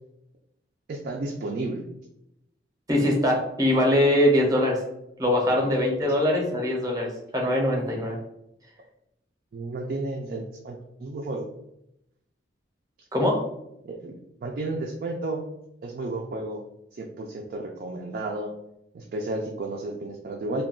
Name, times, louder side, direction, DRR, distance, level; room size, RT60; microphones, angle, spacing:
voice 1, 0.9-1.9 5.5-5.7 9.5-11.5 13.9-15.4 15.8-16.6 16.9-18.5 18.9-20.6, right 2 dB, 50° right, 0 dB, 0.3 m, -32 dB
voice 2, 2.9-4.8 5.2-8.2 13.1-13.4, left 1 dB, 20° right, 0 dB, 0.7 m, -22 dB
2.3 x 2.2 x 3.6 m, 0.82 s
head